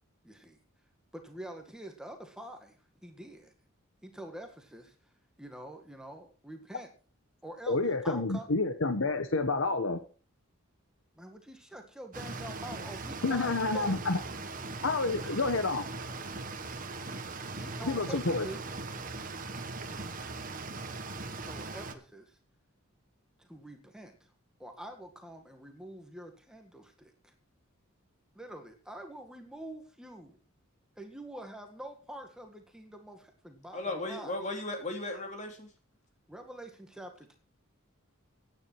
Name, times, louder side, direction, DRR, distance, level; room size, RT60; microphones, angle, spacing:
voice 1, 0.2-0.6 1.1-2.8 3.0-3.5 4.0-5.0 5.4-6.9 7.4-8.5 11.2-14.0 15.2-15.4 17.6-18.6 21.3-22.4 23.4-24.3 24.6-27.3 28.4-30.4 31.0-34.4 36.3-37.4, right 1 dB, 5° right, 4 dB, 1.7 m, -46 dB
voice 2, 7.7-10.0 13.2-14.2 14.8-15.8 17.8-18.5, left 3 dB, 65° left, 10 dB, 1.1 m, -29 dB
sound 1, 12.1-21.9, right 3 dB, 40° right, 1.4 m, -40 dB
voice 3, 33.7-35.7, left 2 dB, 35° left, 4 dB, 2.8 m, -36 dB
15.0 x 9.7 x 4.5 m, 0.38 s
head